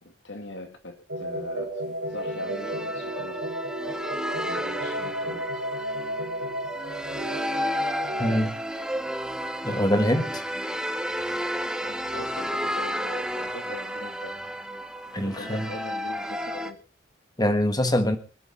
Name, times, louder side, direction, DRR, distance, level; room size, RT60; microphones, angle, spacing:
voice 1, 0.0-3.4 4.3-5.6 9.1-9.2 11.8-14.4 15.2-16.8, left 2 dB, 65° left, 2.5 m, -41 dB
sound 1, 1.1-8.5, right 1 dB, 80° right, 3.1 m, -33 dB
sound 2, 2.1-16.7, equal, 5° right, 1.0 m, -32 dB
voice 2, 8.2-8.5 9.6-10.4 15.1-15.6 17.4-18.2, left 1 dB, 20° left, 1.5 m, -23 dB
24.5 x 9.3 x 4.4 m
head